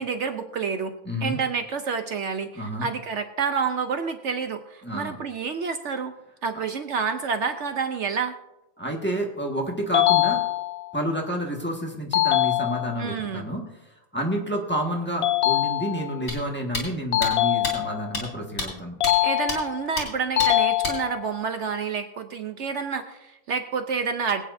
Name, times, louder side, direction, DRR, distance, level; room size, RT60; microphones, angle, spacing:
voice 1, 0.0-0.9 1.2-6.1 6.4-8.3 13.0-13.5 19.2-24.4, right 5 dB, 65° right, 7 dB, 1.0 m, -28 dB
voice 2, 1.0-1.4 2.5-2.9 4.8-5.2 8.8-10.4 10.9-13.6 14.1-19.0, equal, 10° left, -1 dB, 1.5 m, -29 dB
sound 1, 9.9-11.0 12.1-13.1 15.2-16.2 17.1-18.2 19.0-19.9 20.4-21.4, left 14 dB, 65° left, 0.6 m, -23 dB
sound 2, 16.3-16.4 16.7-16.9 17.2-17.3 17.6-17.7 18.1-18.2 18.6-18.7 19.0-19.1 19.5-19.6 20.0-20.1 20.4-20.5 20.8-21.0, left 2 dB, 85° left, 3.8 m, -28 dB
22.5 x 8.9 x 2.6 m, 0.94 s
omnidirectional pair, 1.4 m